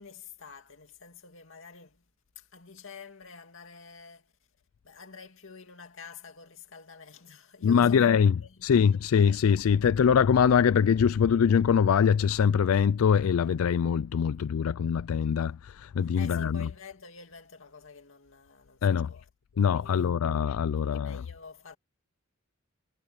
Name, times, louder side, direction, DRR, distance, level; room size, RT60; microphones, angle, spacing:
voice 1, 0.0-2.0 2.4-4.3 4.8-8.7 16.1-20.2 20.8-21.8, left 5 dB, 65° left, 2.6 m, -48 dB
voice 2, 7.6-8.3 8.6-16.6 18.8-19.1 19.6-21.2, left 7 dB, 90° left, 0.4 m, -23 dB
head